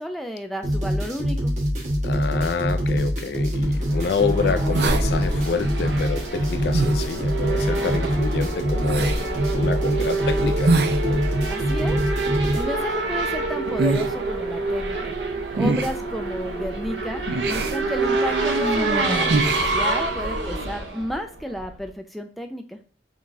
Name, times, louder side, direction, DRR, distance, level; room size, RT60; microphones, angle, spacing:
voice 1, 0.0-1.5 11.5-12.0 12.5-15.2 15.5-22.8, equal, ahead, 0.4 m, -32 dB
sound 1, 0.6-12.6, equal, 40° right, 1.2 m, -24 dB
voice 2, 2.0-10.7 11.0-11.3, left 5 dB, 70° left, 0.4 m, -28 dB
Race car auto racing / Accelerating revving vroom, 3.7-21.8, right 3 dB, 85° right, 1.0 m, -27 dB
sound 2, 3.9-20.5, right 2 dB, 70° right, 0.5 m, -29 dB
3.8 x 3.6 x 2.6 m
head